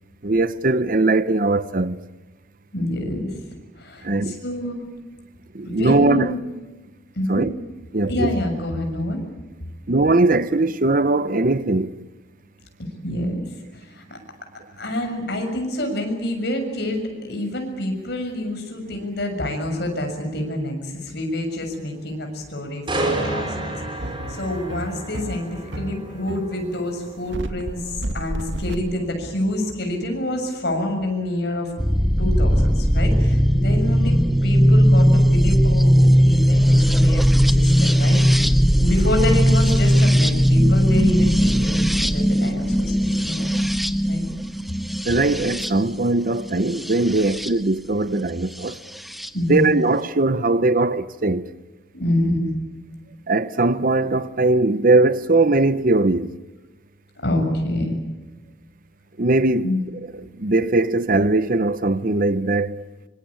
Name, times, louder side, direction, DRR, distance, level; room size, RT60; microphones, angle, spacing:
voice 1, 0.2-2.0 4.0-4.4 5.5-6.3 7.3-7.5 7.9-8.4 9.9-11.9 45.0-48.8 49.5-51.5 53.3-56.4 59.2-62.8, right 2 dB, 45° right, 0.8 m, -20 dB
voice 2, 2.7-3.3 3.8-4.8 5.7-6.3 7.1-7.5 8.1-9.2 13.0-13.4 13.7-14.2 14.8-31.7 32.2-38.5 38.8-43.7 44.1-44.2 49.3-49.6 52.0-52.4 57.2-57.9 59.6-59.8, left 1 dB, 55° left, 6.8 m, -27 dB
sound 1, 22.9-36.7 37.1-37.4, right 2 dB, 25° right, 4.8 m, -34 dB
sound 2, 24.0-29.5, right 1 dB, 70° right, 1.8 m, -32 dB
sound 3, 31.8-47.5 48.7-49.3, equal, ahead, 0.8 m, -18 dB
25.5 x 25.0 x 8.7 m
head